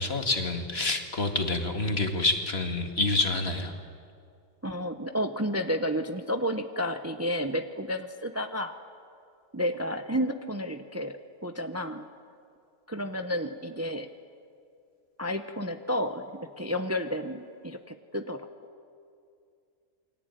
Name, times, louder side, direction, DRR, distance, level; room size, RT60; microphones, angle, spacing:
voice 1, 0.0-3.7, left 2 dB, 50° left, 5 dB, 2.4 m, -27 dB
voice 2, 4.6-8.7 9.5-12.1 12.9-14.1 15.2-18.5, equal, 15° right, 7 dB, 0.8 m, -31 dB
29.0 x 22.5 x 9.2 m, 2.4 s
omnidirectional pair, 1.3 m